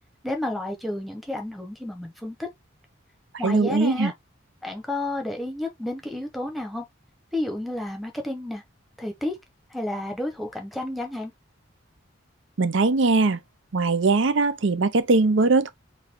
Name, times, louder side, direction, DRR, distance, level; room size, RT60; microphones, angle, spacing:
voice 1, 0.2-2.5 3.4-4.1 4.6-6.9 7.3-8.6 9.0-9.4 9.7-11.3, left 1 dB, ahead, 1.2 m, -31 dB
voice 2, 3.4-4.1 12.6-13.4 13.7-15.7, right 3 dB, 65° right, 0.6 m, -20 dB
4.0 x 2.8 x 4.6 m
head